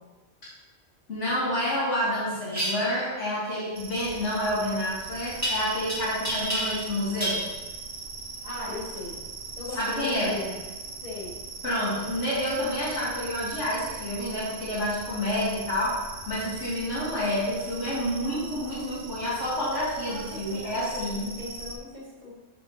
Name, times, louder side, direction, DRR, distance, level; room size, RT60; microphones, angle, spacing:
voice 1, 1.1-7.4 9.7-10.4 11.6-21.3, left 1 dB, 85° left, -8 dB, 1.9 m, -29 dB
sound 1, 2.5-2.7 5.4-5.9 6.2-6.9 7.2-7.4, right 1 dB, 15° right, 1.5 m, -28 dB
sound 2, 3.7-21.8, right 4 dB, 60° right, 0.8 m, -40 dB
voice 2, 8.4-9.1 9.6-10.6 11.0-11.3 20.1-22.3, left 3 dB, 30° left, -7 dB, 2.0 m, -38 dB
5.9 x 4.8 x 3.7 m, 1.2 s
omnidirectional pair, 1.2 m